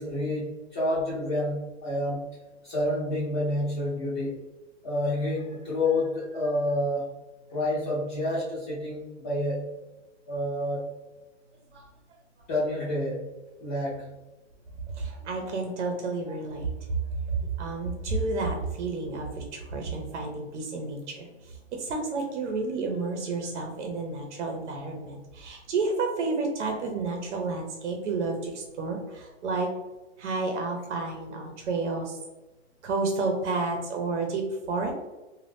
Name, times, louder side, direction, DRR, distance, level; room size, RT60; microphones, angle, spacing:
voice 1, 0.0-2.3 2.6-4.4 4.8-7.2 7.5-9.7 10.3-10.9 12.5-14.1, left 1 dB, 20° left, -9 dB, 0.5 m, -29 dB
voice 2, 15.0-16.7 17.3-21.3 21.7-29.7 30.2-32.2 32.8-34.9, right 3 dB, 85° right, 3 dB, 0.7 m, -30 dB
2.6 x 2.3 x 3.4 m, 1.1 s
hypercardioid pair, 170°, 34 cm